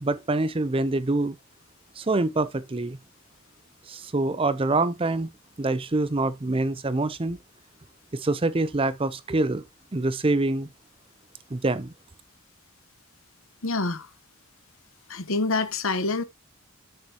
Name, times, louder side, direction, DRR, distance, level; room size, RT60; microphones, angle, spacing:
voice 1, 0.0-1.4 2.0-3.0 3.9-5.3 5.6-7.4 8.1-9.6 9.9-10.7 11.5-11.9, right 2 dB, 25° right, 0.6 m, -25 dB
voice 2, 13.6-14.1 15.1-16.2, left 3 dB, 75° left, 1.1 m, -26 dB
9.5 x 7.0 x 2.9 m
head